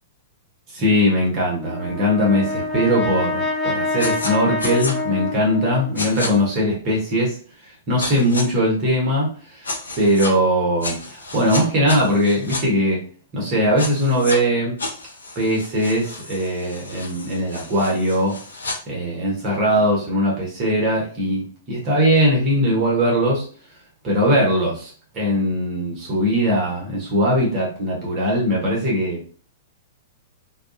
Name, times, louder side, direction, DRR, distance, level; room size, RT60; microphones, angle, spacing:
voice 1, 0.7-7.4 7.6-9.7 10.0-13.0 13.3-14.7 15.3-18.4 18.9-23.4 24.0-29.4, equal, 35° right, -4 dB, 1.0 m, -20 dB
Brass instrument, 1.6-6.0, left 2 dB, 25° left, 0.4 m, -26 dB
sound 1, 4.0-4.3 4.6-4.9 6.0-6.3 8.0-8.4 9.6-10.3 10.8-12.6 13.8-14.4 14.8-18.8, left 2 dB, 75° left, 0.5 m, -31 dB
2.3 x 2.2 x 2.5 m, 0.43 s
figure-of-eight pair, 105°, 0 cm